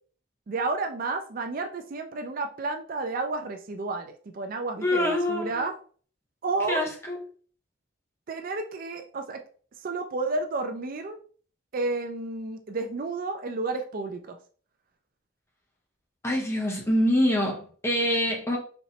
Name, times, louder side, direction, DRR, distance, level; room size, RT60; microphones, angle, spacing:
voice 1, 0.5-5.7 6.4-6.8 8.3-9.4 9.8-11.2 11.7-14.4, right 3 dB, 45° right, 6 dB, 0.4 m, -31 dB
voice 2, 4.8-5.7 6.7-7.2 16.2-18.6, left 1 dB, 15° left, 0 dB, 0.8 m, -25 dB
4.2 x 3.0 x 2.8 m, 0.43 s
head